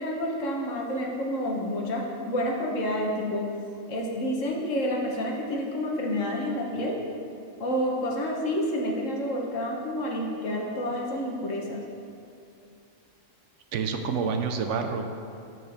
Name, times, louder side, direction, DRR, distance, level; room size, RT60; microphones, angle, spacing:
voice 1, 0.0-3.5 3.9-7.0 7.6-11.8, equal, 70° left, -1 dB, 1.4 m, -29 dB
voice 2, 13.7-15.1, right 5 dB, 70° right, 5 dB, 0.9 m, -28 dB
12.5 x 4.5 x 3.4 m, 2.6 s
omnidirectional pair, 1.4 m